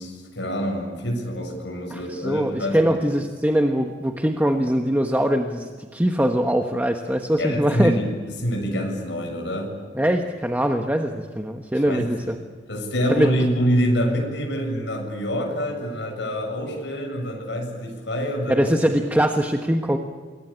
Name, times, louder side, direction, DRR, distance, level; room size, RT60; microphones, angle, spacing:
voice 1, 0.0-3.0 7.4-8.0 8.3-9.7 11.8-12.3 12.7-18.7, equal, 70° left, 1 dB, 7.3 m, -26 dB
voice 2, 1.9-8.0 9.9-12.4 13.1-13.3 18.5-20.0, equal, 10° right, 4 dB, 1.3 m, -22 dB
28.5 x 23.0 x 8.9 m, 1.5 s
head